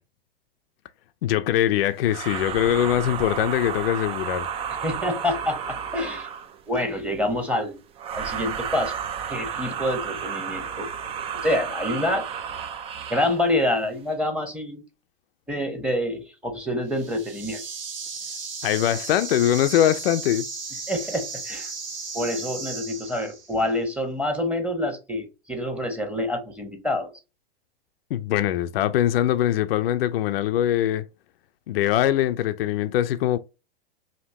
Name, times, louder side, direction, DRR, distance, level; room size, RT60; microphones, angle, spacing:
voice 1, 1.2-4.5 18.6-20.5 28.1-31.0 31.7-33.4, left 12 dB, 75° left, 0.5 m, -22 dB
sound 1, 2.0-6.6 8.0-13.4, right 7 dB, 20° right, 0.4 m, -32 dB
voice 2, 4.8-6.3 6.7-7.8 8.1-9.0 9.3-10.9 11.4-12.2 13.1-14.8 15.5-17.6 20.9-21.7 22.1-27.1, left 1 dB, 5° right, 1.1 m, -27 dB
sound 2, 16.9-23.6, right 4 dB, 40° right, 1.3 m, -35 dB
5.2 x 2.8 x 2.7 m
hypercardioid pair, 120°, 30 cm